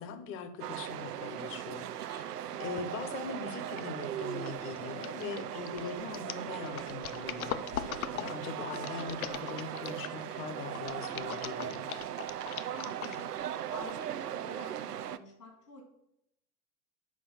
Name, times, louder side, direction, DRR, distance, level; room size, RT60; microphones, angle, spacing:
voice 1, 0.0-2.2 2.6-11.9, left 6 dB, 25° left, 10 dB, 0.8 m, -42 dB
sound 1, 0.6-15.2, right 10 dB, 75° right, 0.6 m, -39 dB
sound 2, 3.8-4.0 4.4-10.2 10.7-13.4 13.9-14.0, left 11 dB, 65° left, 0.6 m, -40 dB
voice 2, 12.8-13.3 13.7-15.8, left 3 dB, 80° left, 1 dB, 2.8 m, -49 dB
7.4 x 5.0 x 5.6 m, 0.82 s
figure-of-eight pair, 90°, 47 cm